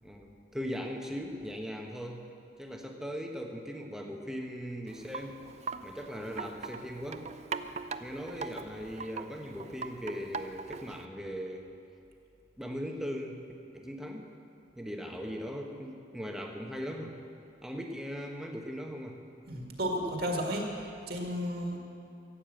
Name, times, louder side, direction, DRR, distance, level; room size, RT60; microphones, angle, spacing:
voice 1, 0.0-2.3 2.6-5.4 5.8-7.3 8.0-11.7 12.6-13.4 13.7-14.3 14.8-17.2 17.6-19.2, equal, 5° right, 1 dB, 1.1 m, -39 dB
Wind chime, 4.9-11.1, right 5 dB, 35° right, 0.4 m, -41 dB
voice 2, 19.5-21.8, equal, 55° right, 0 dB, 1.8 m, -33 dB
15.0 x 8.8 x 7.7 m, 2.5 s
head